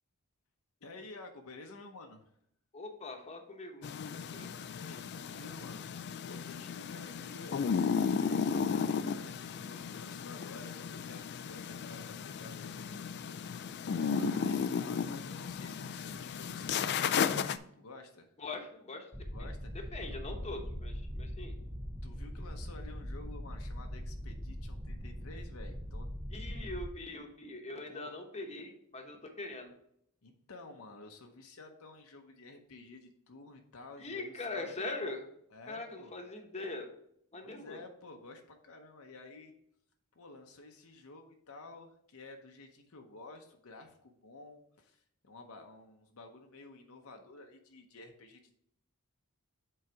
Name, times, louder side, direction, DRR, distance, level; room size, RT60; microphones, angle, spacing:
voice 1, 0.8-2.2 4.7-5.8 6.3-13.1 13.9-18.3 19.3-20.2 22.0-26.1 27.9-28.2 30.2-34.7 35.5-36.1 37.4-39.5 40.2-48.6, left 3 dB, 65° left, 3 dB, 0.8 m, -52 dB
voice 2, 2.7-4.5 18.4-19.1 19.4-19.5 19.7-21.5 26.3-29.7 34.0-35.3 35.7-36.9 37.3-37.8, left 2 dB, 30° left, 3 dB, 1.0 m, -42 dB
sound 1, 3.8-17.6, left 6 dB, 50° left, 0.3 m, -34 dB
sound 2, 19.1-26.9, equal, 5° right, 0.5 m, -41 dB
7.7 x 4.0 x 4.6 m, 0.71 s
head